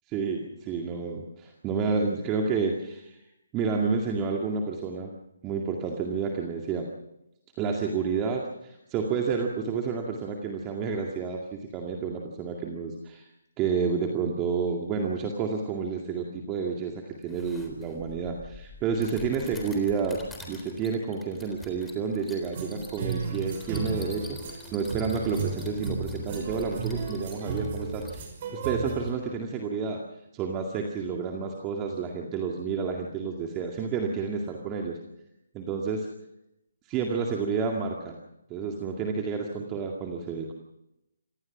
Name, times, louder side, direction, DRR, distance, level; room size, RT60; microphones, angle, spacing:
voice 1, 0.1-3.2 3.5-5.1 5.4-6.9 7.6-13.2 13.6-30.0 30.3-35.0 35.6-36.1 36.9-38.2 38.5-40.5, right 5 dB, 20° right, 1 dB, 2.2 m, -30 dB
sound 1, 17.2-28.2, left 2 dB, 5° left, 3.7 m, -47 dB
sound 2, 22.5-29.1, right 4 dB, 40° right, 5.6 m, -34 dB
26.5 x 18.5 x 6.1 m, 0.89 s
figure-of-eight pair, 145°, 0 cm